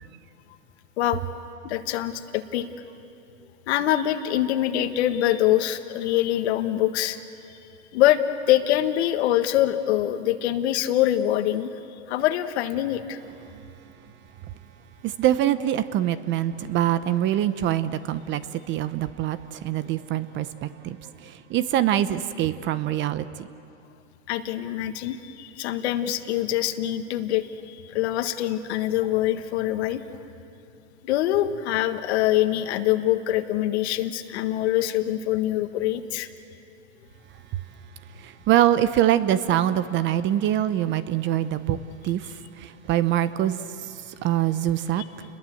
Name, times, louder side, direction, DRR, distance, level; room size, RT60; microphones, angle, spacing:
voice 1, 1.6-2.7 3.7-7.2 7.5-7.6 7.9-8.2 8.5-11.7 12.1-13.2 24.3-30.0 31.0-36.3, left 13 dB, 60° left, 9 dB, 1.7 m, -24 dB
voice 2, 15.0-23.2 38.2-41.8 42.0-42.3 42.6-43.6 44.2-45.0, right 12 dB, 30° right, 14 dB, 0.9 m, -24 dB
29.5 x 21.5 x 7.9 m, 2.7 s
hypercardioid pair, 130°, 36 cm